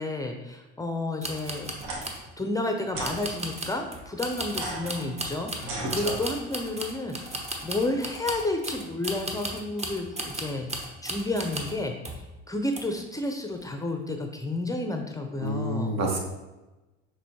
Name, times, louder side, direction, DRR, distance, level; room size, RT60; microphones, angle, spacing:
voice 1, 0.0-1.7 2.4-10.7 11.0-12.0 12.5-16.0, left 2 dB, 10° left, 4 dB, 0.5 m, -31 dB
sound 1, 1.2-2.2 3.0-11.8 12.0-12.3 12.7-13.2 13.5-13.7, right 1 dB, 20° right, 0.8 m, -36 dB
sound 2, 1.8-2.0 2.9-3.2 4.5-6.5, right 2 dB, 75° right, 1.1 m, -37 dB
voice 2, 5.8-6.1 15.4-16.2, right 1 dB, 50° right, 2 dB, 1.2 m, -29 dB
6.1 x 3.1 x 2.9 m, 1.1 s
hypercardioid pair, 75°, 33 cm